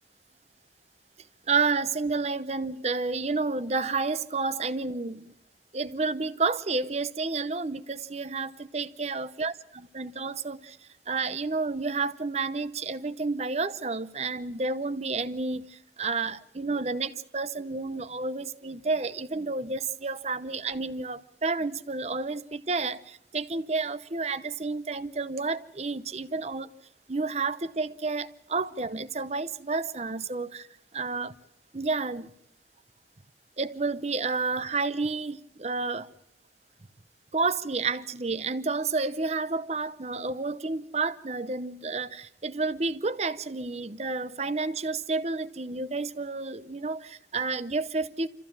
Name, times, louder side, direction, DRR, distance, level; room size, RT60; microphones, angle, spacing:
voice 1, 1.5-5.3 5.7-10.8 11.1-26.7 27.1-30.7 30.9-31.3 31.7-32.3 33.6-36.1 37.3-48.3, right 3 dB, 40° right, 0.7 m, -30 dB
27.5 x 14.5 x 7.4 m
head